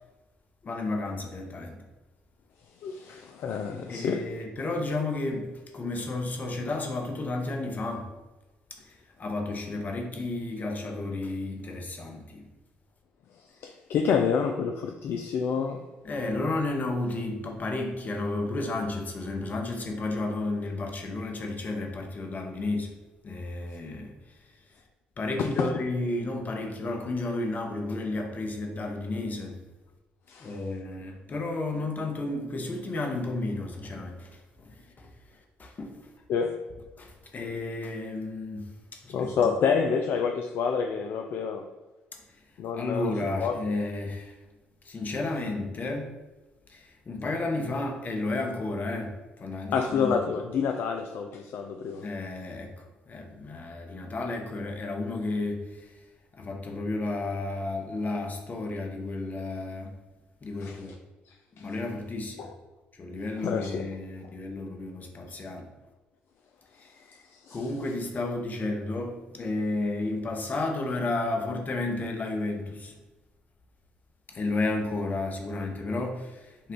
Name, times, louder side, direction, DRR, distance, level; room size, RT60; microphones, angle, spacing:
voice 1, 0.6-1.8 3.9-8.1 8.7-8.8 9.2-12.5 16.0-22.9 23.2-24.1 25.2-29.6 30.4-35.1 35.6-36.1 37.0-39.5 42.7-44.3 44.8-46.1 46.7-50.3 52.0-55.9 56.3-60.0 60.4-60.9 61.6-62.5 62.9-65.7 66.8-66.9 67.5-72.9 74.3-76.7, left 2 dB, 40° left, 1.0 m, -32 dB
voice 2, 2.8-4.3 13.6-15.9 25.4-25.8 30.3-30.6 36.3-36.6 39.1-41.7 42.6-43.1 43.4-43.6 49.7-52.1 60.6-60.9 61.3-61.7 62.4-62.5 63.4-63.9 67.3-67.7, left 6 dB, 60° left, 0.4 m, -28 dB
5.5 x 2.4 x 3.6 m
hypercardioid pair, 55°, 4 cm